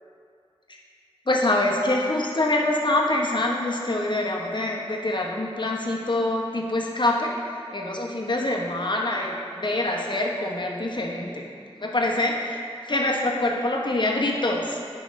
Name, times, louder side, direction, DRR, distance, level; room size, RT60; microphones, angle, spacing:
voice 1, 1.3-7.3 7.7-11.4 11.8-12.3 12.9-14.8, left 1 dB, 50° left, -1 dB, 1.0 m, -25 dB
10.5 x 4.9 x 3.2 m, 2.4 s
wide cardioid pair, 45°, 10 cm